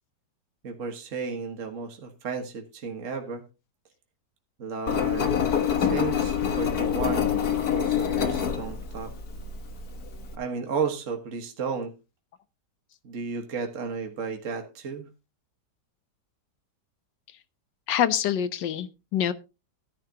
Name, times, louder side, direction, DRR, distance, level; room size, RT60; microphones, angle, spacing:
voice 1, 0.6-3.4 4.6-5.4 5.8-9.1 10.4-11.9 13.0-15.1, right 5 dB, 45° right, 4 dB, 1.8 m, -33 dB
Engine, 4.9-10.3, left 8 dB, 60° left, 1.7 m, -26 dB
voice 2, 17.9-19.3, left 10 dB, 85° left, 14 dB, 1.5 m, -25 dB
14.0 x 10.5 x 2.8 m, 0.28 s
omnidirectional pair, 1.9 m